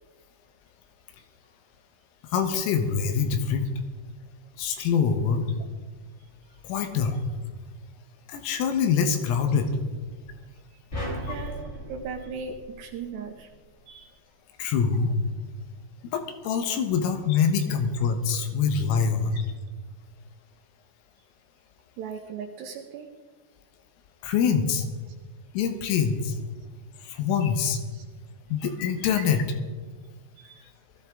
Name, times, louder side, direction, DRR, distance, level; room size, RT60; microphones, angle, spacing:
voice 1, 2.3-3.7 4.6-5.5 6.6-7.2 8.3-9.7 11.3-11.4 14.6-15.1 16.1-19.4 24.2-24.9 25.6-26.4 27.0-27.8 28.5-29.4, left 6 dB, 90° left, 6 dB, 3.9 m, -25 dB
voice 2, 6.5-7.0 10.7-10.8 11.2-13.5 13.9-14.1 16.9-17.0 19.3-19.4 22.0-23.1 27.9-28.0 29.2-29.3 30.4-30.7, right 5 dB, 75° right, 3 dB, 2.5 m, -39 dB
sound 1, 10.9-13.3, equal, 20° left, 2.2 m, -36 dB
19.5 x 14.5 x 3.7 m, 1.4 s
omnidirectional pair, 5.8 m